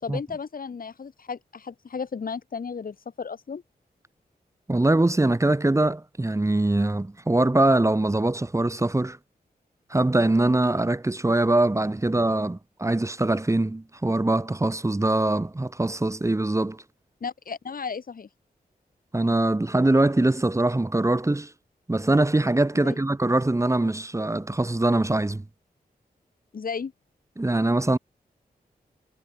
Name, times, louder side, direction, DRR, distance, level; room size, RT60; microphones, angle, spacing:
voice 1, 0.0-3.6 17.2-18.3 22.7-23.0 26.5-26.9, left 5 dB, 60° left, 2.7 m, -34 dB
voice 2, 4.7-9.2 9.9-16.8 19.1-21.5 21.9-25.4 27.4-28.0, right 2 dB, 20° right, 1.8 m, -23 dB
wide cardioid pair, 95°, 16 cm